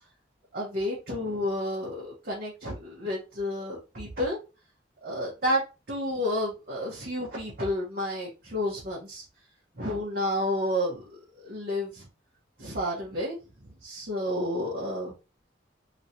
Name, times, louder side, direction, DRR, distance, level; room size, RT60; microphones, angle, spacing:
voice 1, 0.5-4.4 5.0-5.6 5.9-9.2 9.8-11.0 11.4-12.1 12.6-13.4 13.8-15.1, left 1 dB, 55° right, -4 dB, 1.1 m, -30 dB
3.2 x 3.0 x 2.7 m, 0.29 s
head